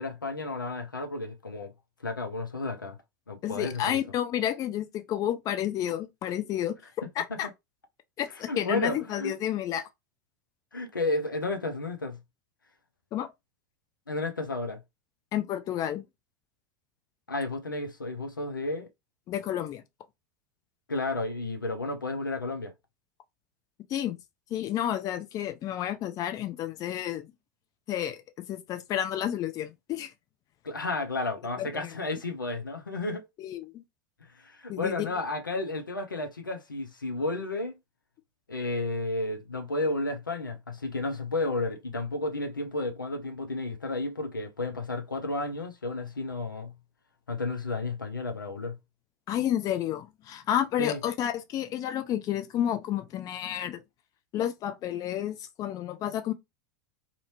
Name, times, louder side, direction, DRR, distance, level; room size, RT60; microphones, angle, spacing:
voice 1, 0.0-1.7 2.0-3.0 3.3-4.0 7.3-7.4 8.5-9.3 10.7-12.2 14.1-14.8 17.3-18.9 20.9-22.7 30.6-33.2 34.4-37.8 38.5-46.7 47.3-48.8 50.8-51.0, left 2 dB, 90° left, 0.4 m, -32 dB
voice 2, 3.4-6.8 7.2-7.5 8.2-9.9 13.1-13.3 15.3-16.0 19.3-19.8 23.9-24.2 24.5-27.3 27.9-28.2 28.5-30.1 31.6-31.9 33.4-33.8 34.7-35.1 49.3-53.8 54.3-56.3, left 11 dB, 35° left, 0.5 m, -30 dB
2.5 x 2.1 x 2.9 m
figure-of-eight pair, 85°, 11 cm